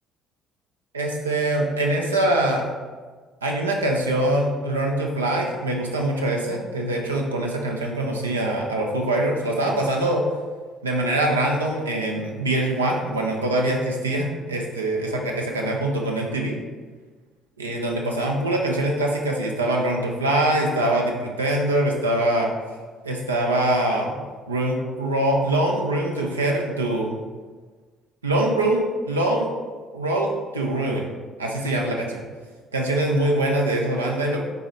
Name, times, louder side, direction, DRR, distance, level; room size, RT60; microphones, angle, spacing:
voice 1, 0.9-2.7 3.4-10.2 10.8-16.6 17.6-22.5 23.0-24.1 24.5-27.2 28.2-29.5 29.9-31.1 31.4-32.2 32.7-34.4, right 1 dB, 85° right, 0 dB, 0.4 m, -23 dB
3.9 x 3.7 x 3.0 m, 1.4 s
figure-of-eight pair, 50°, 0 cm